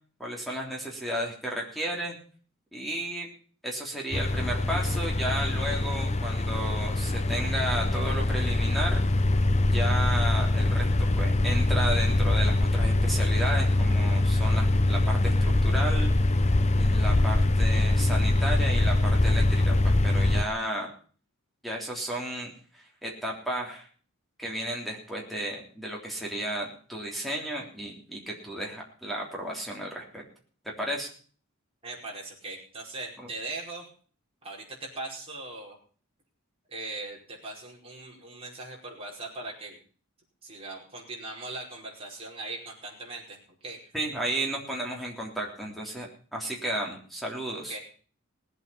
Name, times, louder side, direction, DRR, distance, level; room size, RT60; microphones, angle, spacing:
voice 1, 0.2-2.2 2.7-3.3 3.6-9.0 9.5-10.9 11.2-16.1 16.8-20.9 21.6-23.9 24.4-30.2 30.8-31.1 43.9-47.8, right 1 dB, ahead, -1 dB, 3.4 m, -33 dB
sound 1, 4.1-20.4, left 2 dB, 30° left, 0.7 m, -23 dB
voice 2, 31.8-33.9 34.4-35.8 36.7-39.8 40.4-43.9 47.7-47.8, right 2 dB, 25° right, -2 dB, 5.0 m, -40 dB
19.5 x 8.3 x 5.5 m, 0.42 s
head